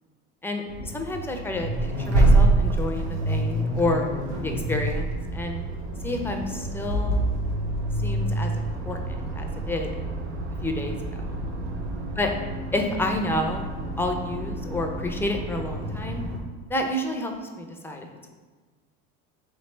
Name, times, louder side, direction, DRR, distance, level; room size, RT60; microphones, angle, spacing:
voice 1, 0.4-4.1 4.4-5.6 6.0-7.2 8.0-9.9 10.6-11.4 12.2-12.3 12.7-13.7 14.0-16.2 16.7-18.1, left 1 dB, 5° left, 3 dB, 0.4 m, -29 dB
Accelerating revving vroom, 0.7-16.4, right 2 dB, 90° right, 0.8 m, -27 dB
3.3 x 3.2 x 4.3 m, 1.4 s
supercardioid pair, 115°, 31 cm